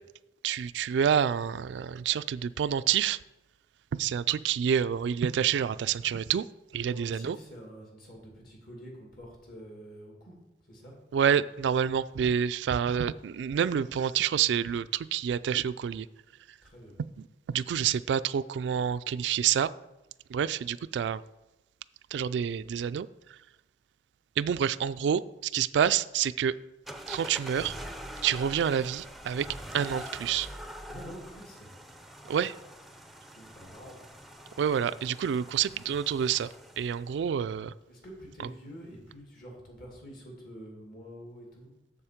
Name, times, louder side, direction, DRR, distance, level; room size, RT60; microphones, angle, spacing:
voice 1, 0.4-3.2 3.9-6.5 6.7-7.4 11.1-16.1 17.5-19.7 20.3-21.2 22.1-23.4 24.4-26.5 27.1-27.8 28.2-29.5 29.7-30.5 32.3-32.6 34.6-36.5 36.8-37.7, right 8 dB, 75° right, 15 dB, 0.3 m, -28 dB
voice 2, 6.8-10.3 10.6-11.0 16.6-16.9 30.9-31.7 33.3-34.0 37.9-41.7, equal, 55° left, -1 dB, 2.5 m, -47 dB
sound 1, 26.9-37.1, equal, ahead, 0.5 m, -44 dB
7.2 x 6.9 x 5.0 m, 0.96 s
head